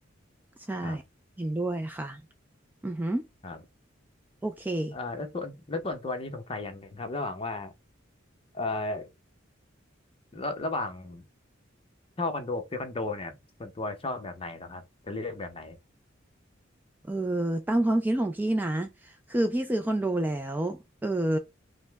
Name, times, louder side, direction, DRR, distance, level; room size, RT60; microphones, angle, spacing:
voice 1, 0.7-1.0 1.4-2.2 2.8-3.3 4.4-5.0 17.1-21.4, right 1 dB, 10° right, 0.3 m, -28 dB
voice 2, 4.9-7.7 8.5-9.1 10.3-11.2 12.2-15.8, left 2 dB, 30° left, 0.7 m, -34 dB
5.2 x 2.1 x 3.3 m
head